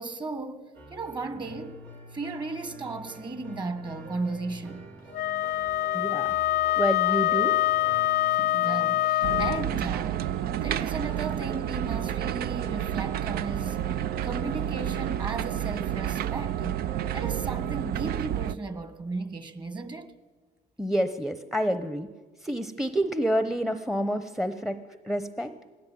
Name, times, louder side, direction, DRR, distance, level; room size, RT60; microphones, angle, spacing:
voice 1, 0.0-1.8 2.1-4.9 8.4-10.3 10.6-13.8 14.2-16.8 17.1-20.1, right 3 dB, 25° right, 1.7 m, -35 dB
sound 1, 0.7-17.5, right 2 dB, 90° right, 4.2 m, -46 dB
Wind instrument woodwind instrument, 5.1-9.7, left 14 dB, 60° left, 0.6 m, -25 dB
voice 2, 5.9-6.3 6.8-7.6 20.8-22.1 22.4-24.8 25.0-25.5, equal, ahead, 0.8 m, -28 dB
sound 2, 9.2-18.5, right 11 dB, 65° right, 0.6 m, -30 dB
19.5 x 17.0 x 9.3 m
cardioid pair, 110°, 17 cm